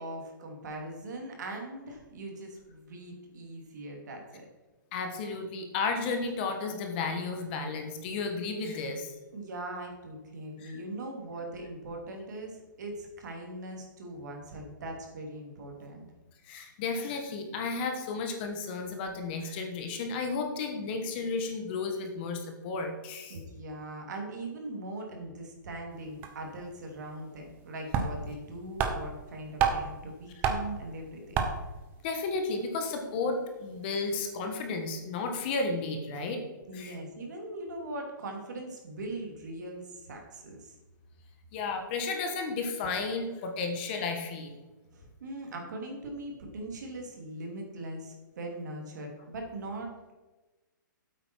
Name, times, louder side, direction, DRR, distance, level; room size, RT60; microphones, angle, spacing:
voice 1, 0.0-4.5 9.3-16.1 23.3-31.4 36.7-40.7 44.9-50.1, right 1 dB, 60° right, 1 dB, 2.8 m, -40 dB
voice 2, 4.9-9.1 10.6-10.8 16.5-23.4 32.0-36.4 36.7-37.0 41.5-44.5, left 4 dB, 30° left, 4 dB, 1.2 m, -33 dB
sound 1, 26.0-26.1 26.2-26.4 27.5-27.6 27.9-28.5 28.8-30.0 30.4-30.8 31.3-31.8, right 6 dB, 20° right, 0.8 m, -29 dB
9.0 x 8.2 x 4.6 m, 1.2 s
hypercardioid pair, 165°, 11 cm